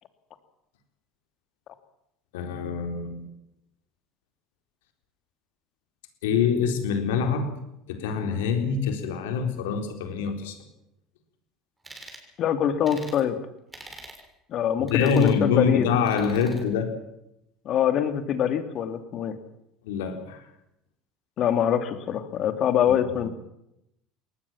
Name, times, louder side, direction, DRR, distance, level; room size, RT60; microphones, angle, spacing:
voice 1, 2.3-3.3 6.2-7.6 7.9-10.6 14.9-17.0 19.8-20.4 22.9-23.2, left 6 dB, 80° left, 5 dB, 4.0 m, -25 dB
sound 1, 11.8-12.3 12.9-13.2 13.7-14.2 14.9-15.4 16.1-16.6, right 2 dB, 15° right, 6.4 m, -44 dB
voice 2, 12.4-13.4 14.5-16.1 17.6-19.4 21.4-23.3, left 9 dB, 55° left, 8 dB, 2.8 m, -24 dB
22.0 x 19.0 x 7.4 m, 0.83 s
hypercardioid pair, 80°, 0 cm